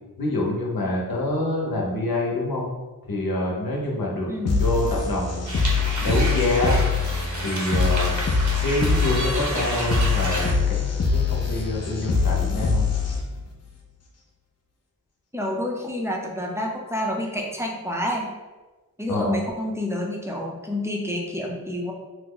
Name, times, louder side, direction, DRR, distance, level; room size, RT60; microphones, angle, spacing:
voice 1, 0.2-2.7 3.1-4.3 4.6-5.5 6.0-6.8 7.4-8.2 8.6-10.8 11.1-12.9 19.1-19.3, left 1 dB, 70° left, -2 dB, 0.9 m, -26 dB
voice 2, 4.3-4.6 15.3-18.3 19.0-21.9, left 1 dB, 5° right, -1 dB, 0.5 m, -28 dB
sound 1, 4.4-13.4, left 4 dB, 45° left, 0.5 m, -24 dB
sound 2, 5.5-10.5, right 1 dB, 50° right, 0.8 m, -31 dB
2.9 x 2.1 x 3.7 m, 1.2 s
wide cardioid pair, 60°, 36 cm